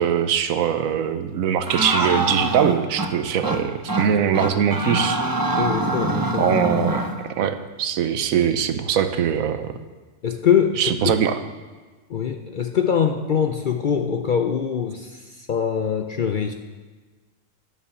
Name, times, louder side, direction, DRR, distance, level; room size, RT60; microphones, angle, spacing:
voice 1, 0.0-5.2 6.4-7.0 7.4-9.7 10.8-11.4, right 8 dB, 75° right, 9 dB, 1.1 m, -22 dB
sound 1, 1.7-3.1 3.4-3.6 3.9-4.1 4.3-7.1, right 2 dB, 20° right, 0.6 m, -24 dB
voice 2, 5.6-6.5 10.2-10.8 12.1-16.5, left 7 dB, 65° left, 5 dB, 0.5 m, -23 dB
10.0 x 7.3 x 6.9 m, 1.4 s
omnidirectional pair, 1.5 m